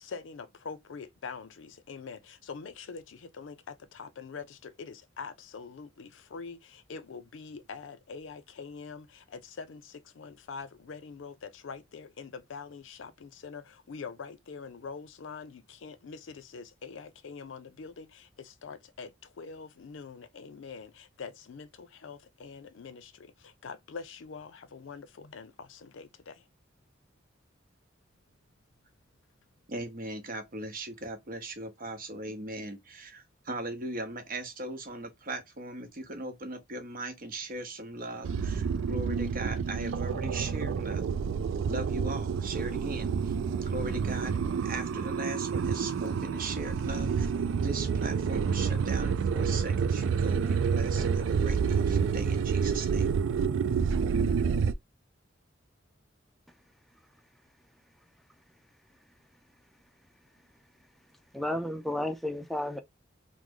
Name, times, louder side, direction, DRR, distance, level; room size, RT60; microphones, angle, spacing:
voice 1, 0.0-26.5, left 5 dB, 80° left, 0.5 m, -44 dB
voice 2, 29.7-41.1 41.7-43.3 43.7-47.3 47.6-53.1, right 2 dB, 50° right, 0.8 m, -39 dB
sound 1, 38.2-54.7, right 6 dB, 85° right, 0.3 m, -29 dB
voice 3, 61.3-62.8, left 1 dB, ahead, 0.3 m, -32 dB
3.1 x 2.0 x 3.6 m
head